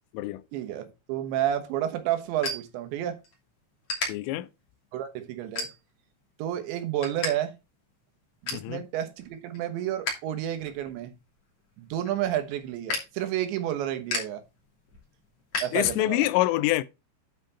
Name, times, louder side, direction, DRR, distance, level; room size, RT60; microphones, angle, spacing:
voice 1, 0.5-3.2 4.9-5.7 6.4-7.6 8.4-11.1 11.8-14.4 15.6-16.3, right 11 dB, 70° right, 3.2 m, -30 dB
sound 1, 1.3-3.4 3.8-4.1 4.7-4.9 5.5-6.1 6.5-7.3 7.6-7.7 8.1-8.7 9.2-10.3 10.6-16.3, left 2 dB, 35° left, 3.1 m, -35 dB
voice 2, 4.1-4.5 8.5-8.8 15.7-16.8, left 17 dB, 85° left, 3.2 m, -25 dB
10.0 x 5.1 x 4.2 m
omnidirectional pair, 5.8 m